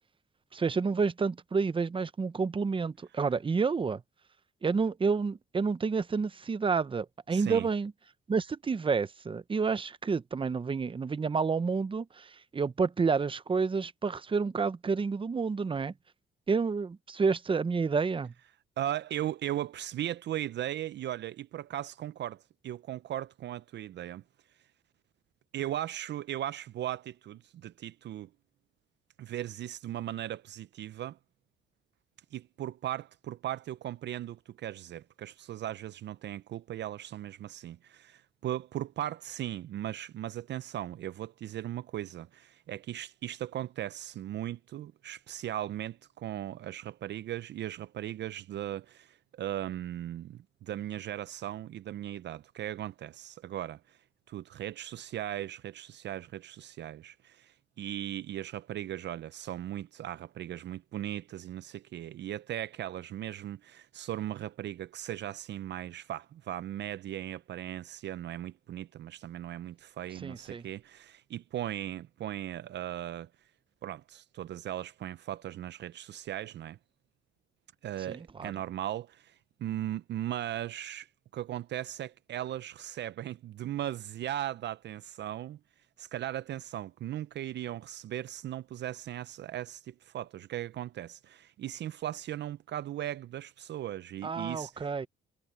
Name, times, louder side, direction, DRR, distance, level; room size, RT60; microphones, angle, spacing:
voice 1, 0.5-4.0 4.6-7.9 8.3-15.9 16.5-18.3 70.2-70.7 78.1-78.5 94.2-95.1, right 5 dB, 25° right, 0.8 m, -29 dB
voice 2, 7.3-7.7 18.8-24.2 25.5-28.3 29.2-31.2 32.3-54.0 54.3-73.3 73.8-76.8 77.8-79.3 79.6-81.1 81.3-85.6 86.0-95.1, right 12 dB, 60° right, 0.5 m, -38 dB
cardioid pair, 90°, 20 cm